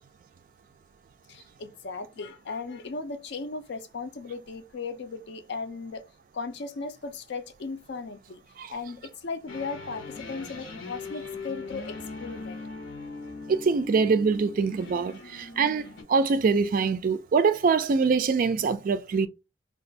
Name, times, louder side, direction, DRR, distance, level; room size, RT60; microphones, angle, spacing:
voice 1, 1.3-6.0 6.3-8.4 8.7-12.6, left 4 dB, 60° left, 0.5 m, -37 dB
sound 1, 9.5-16.0, left 3 dB, 90° left, 0.9 m, -40 dB
voice 2, 13.5-19.3, right 5 dB, 45° right, 0.3 m, -24 dB
2.5 x 2.3 x 3.8 m
head